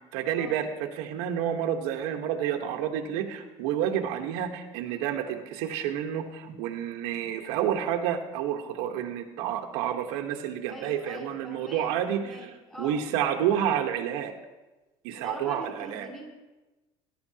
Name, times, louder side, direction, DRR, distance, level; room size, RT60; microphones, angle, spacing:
voice 1, 0.1-12.5 12.8-14.3 15.0-16.1, right 9 dB, 85° right, 4 dB, 1.3 m, -29 dB
voice 2, 10.7-13.0 15.2-16.3, equal, 5° left, -2 dB, 3.4 m, -42 dB
19.0 x 11.5 x 2.9 m, 1.1 s
cardioid pair, 165°, 14 cm